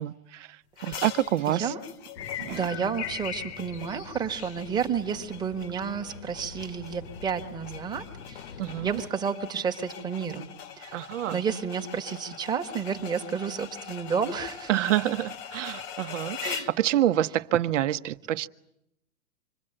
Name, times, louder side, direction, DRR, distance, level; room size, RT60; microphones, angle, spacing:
voice 1, 0.0-1.7 2.4-2.6 8.6-9.0 10.9-11.4 14.7-16.4 16.7-18.5, right 12 dB, 55° right, 1.0 m, -27 dB
sound 1, 0.8-16.8, left 8 dB, 25° left, 1.1 m, -43 dB
voice 2, 1.5-1.8 2.5-8.4 8.8-10.5 10.8-14.7 16.4-16.7, right 6 dB, 10° right, 1.3 m, -31 dB
sound 2, 2.1-9.1, left 8 dB, 50° left, 1.2 m, -41 dB
26.5 x 22.0 x 8.9 m
hypercardioid pair, 155°, 44 cm